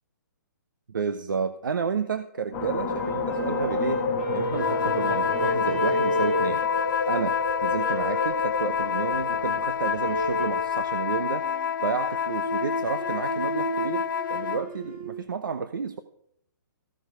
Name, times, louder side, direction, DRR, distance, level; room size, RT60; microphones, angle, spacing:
voice 1, 0.9-4.0 4.3-6.6 7.1-11.4 11.8-16.0, right 6 dB, 85° right, 10 dB, 1.0 m, -31 dB
sound 1, 2.5-11.0, left 3 dB, 20° left, 1.3 m, -32 dB
sound 2, 2.9-7.2 7.7-8.4 10.0-10.6 11.2-15.2, equal, 40° right, 3.4 m, -32 dB
sound 3, 4.5-14.7, left 8 dB, 80° left, 0.5 m, -28 dB
15.5 x 11.0 x 5.1 m, 0.70 s
hypercardioid pair, 170°, 11 cm